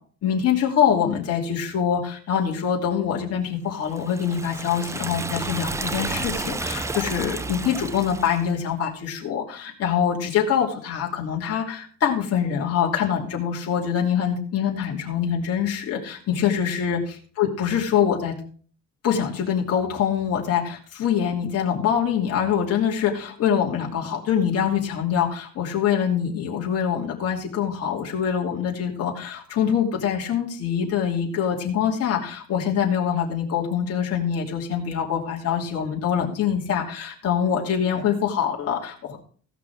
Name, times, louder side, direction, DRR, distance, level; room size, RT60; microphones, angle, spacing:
voice 1, 0.2-18.3 19.0-39.2, left 8 dB, 50° left, -1 dB, 2.8 m, -24 dB
Liquid, 3.9-8.5, right 3 dB, 10° right, 0.4 m, -31 dB
16.5 x 6.0 x 4.9 m, 0.43 s
cardioid pair, 145°, 32 cm